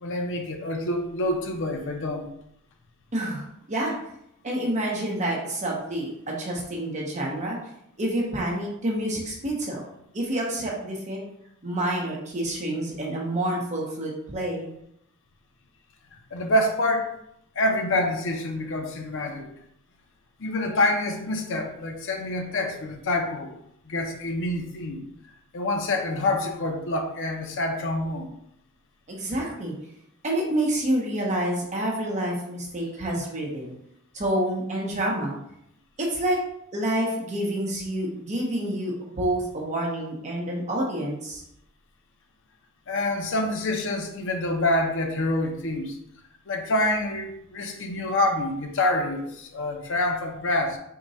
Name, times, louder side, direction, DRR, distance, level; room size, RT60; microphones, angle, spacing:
voice 1, 0.0-2.3 16.3-17.1 17.6-19.5 20.4-23.5 23.9-25.0 25.5-28.3 42.9-46.0 46.5-50.8, left 1 dB, 55° left, 3 dB, 0.6 m, -26 dB
voice 2, 3.1-4.0 4.4-7.6 8.0-9.8 10.1-11.2 11.6-14.7 29.1-29.7 30.2-33.7 34.1-35.3 36.0-36.4 36.7-41.4, right 1 dB, 35° right, -2 dB, 0.8 m, -28 dB
3.7 x 2.2 x 4.0 m, 0.76 s
head